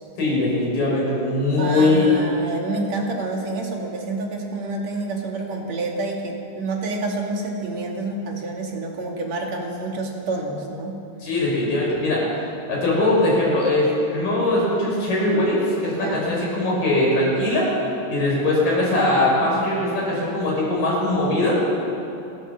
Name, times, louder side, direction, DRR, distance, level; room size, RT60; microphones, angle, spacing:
voice 1, 0.2-2.1 11.2-12.2 12.7-17.7 18.1-21.6, left 2 dB, 45° left, -4 dB, 7.6 m, -21 dB
voice 2, 1.6-11.0 15.9-16.2, right 2 dB, 45° right, 0 dB, 2.8 m, -28 dB
28.0 x 14.0 x 7.5 m, 2.8 s
omnidirectional pair, 5.6 m